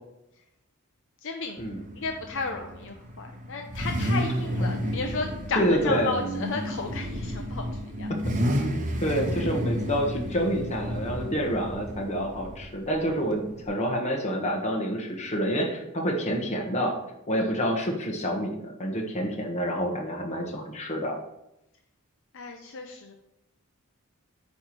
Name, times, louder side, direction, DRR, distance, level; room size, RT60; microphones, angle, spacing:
voice 1, 1.2-1.7 1.9-8.1 17.4-17.6 22.3-23.1, left 4 dB, 60° left, 4 dB, 0.7 m, -34 dB
Car / Idling / Accelerating revving vroom, 1.6-13.7, equal, 35° right, 0.9 m, -31 dB
voice 2, 5.5-6.1 9.0-16.9 17.3-21.2, equal, 30° left, 0 dB, 1.4 m, -28 dB
9.1 x 3.2 x 6.0 m, 0.86 s
head